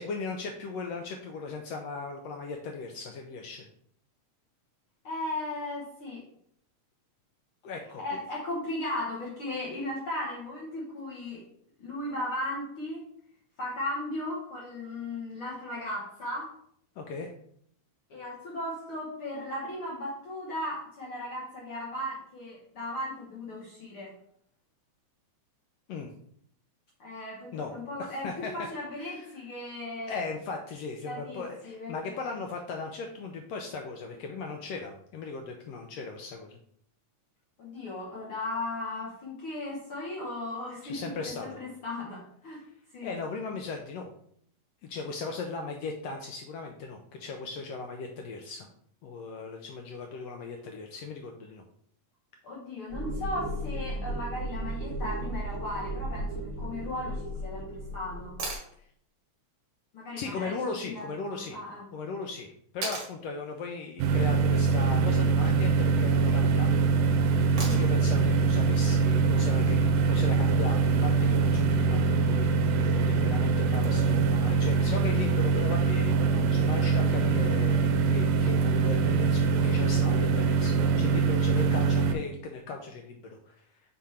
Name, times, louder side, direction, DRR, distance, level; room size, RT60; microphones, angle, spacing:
voice 1, 0.0-3.7 7.6-8.0 17.0-17.3 25.9-26.1 27.5-27.7 28.0-28.5 29.0-29.3 30.1-36.6 40.8-41.6 43.0-44.1 44.8-48.7 49.0-51.6 60.2-61.6 61.9-66.8 67.5-83.7, left 4 dB, 75° left, 3 dB, 1.5 m, -38 dB
voice 2, 5.0-6.3 8.0-11.5 11.8-13.0 13.6-16.5 18.1-24.1 27.0-30.2 31.0-32.3 37.6-42.6 42.9-43.2 52.4-58.4 59.9-61.9 67.6-67.9, left 1 dB, 55° left, -4 dB, 1.7 m, -36 dB
sound 1, 52.9-58.5, right 1 dB, 25° right, 0.9 m, -35 dB
sound 2, 58.4-58.7 60.9-61.0 62.8-63.1 65.2-65.6 67.6-68.1 70.2-70.3, right 3 dB, 45° right, 1.8 m, -36 dB
sound 3, 64.0-82.1, right 4 dB, 75° right, 1.7 m, -24 dB
5.8 x 4.9 x 4.2 m, 0.68 s
omnidirectional pair, 3.4 m